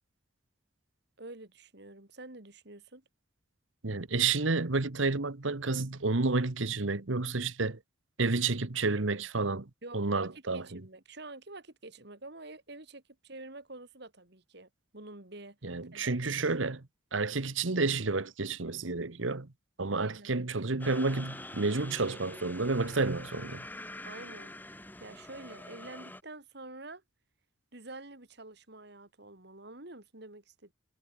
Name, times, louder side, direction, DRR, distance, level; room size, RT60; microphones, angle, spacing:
voice 1, 1.2-3.0 8.2-8.3 9.8-15.6 15.9-16.3 19.9-20.3 24.0-27.0 27.7-30.7, right 2 dB, 60° right, 3.2 m, -48 dB
voice 2, 3.8-7.8 8.2-10.8 15.6-16.8 17.1-19.5 19.8-23.7, right 3 dB, 85° right, 1.3 m, -30 dB
sound 1, 20.8-26.2, left 1 dB, 10° left, 2.8 m, -45 dB
head